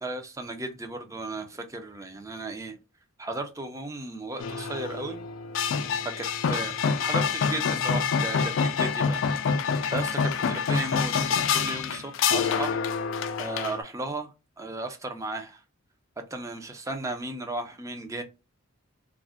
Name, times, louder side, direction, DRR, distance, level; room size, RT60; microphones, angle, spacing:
voice 1, 0.0-2.8 3.2-5.2 6.2-9.2 9.9-11.1 11.5-12.7 13.4-14.3 14.6-15.6 16.3-18.2, right 2 dB, 15° right, 0.4 m, -35 dB
sound 1, 4.4-13.8, left 6 dB, 70° left, 0.3 m, -27 dB
2.4 x 2.1 x 3.5 m
head